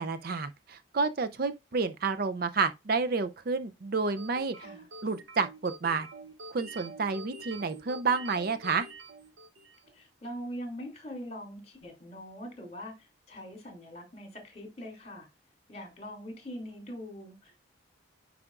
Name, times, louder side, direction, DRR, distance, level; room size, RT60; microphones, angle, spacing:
voice 1, 0.0-4.6 5.0-6.1 6.5-8.9, right 4 dB, 45° right, 0.5 m, -30 dB
sound 1, 4.2-9.9, right 3 dB, 65° right, 0.9 m, -46 dB
voice 2, 4.6-4.9 9.9-15.3 15.7-17.7, equal, 30° left, 2.8 m, -43 dB
9.7 x 4.9 x 2.4 m
head